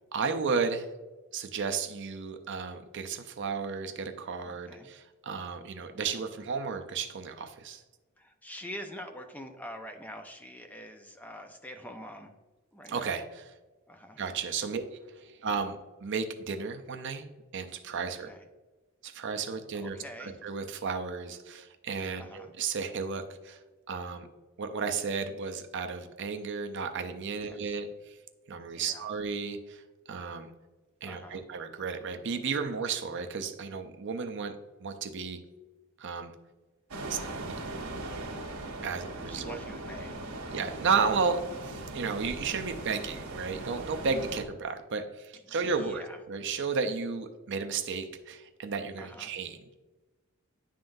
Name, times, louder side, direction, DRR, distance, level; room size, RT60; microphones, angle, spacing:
voice 1, 0.1-0.9 1.3-7.8 12.9-13.4 14.2-18.3 19.0-23.6 23.9-24.3 24.6-28.2 28.5-29.8 30.1-30.5 31.0-34.5 34.8-35.4 36.0-36.3 37.1-37.6 38.8-39.6 40.5-49.7, right 5 dB, 55° right, 6 dB, 0.5 m, -33 dB
voice 2, 4.4-4.9 5.9-6.1 8.2-12.3 12.7-13.1 13.9-14.2 18.3-18.4 19.5-20.4 22.2-22.5 27.4-27.8 28.7-29.1 31.0-31.4 37.0-37.4 39.2-40.5 45.5-46.2 49.0-49.3, equal, 5° left, 5 dB, 0.4 m, -46 dB
sound 1, 36.9-44.4, right 2 dB, 90° right, 1.0 m, -39 dB
10.0 x 3.8 x 2.6 m, 1.2 s
head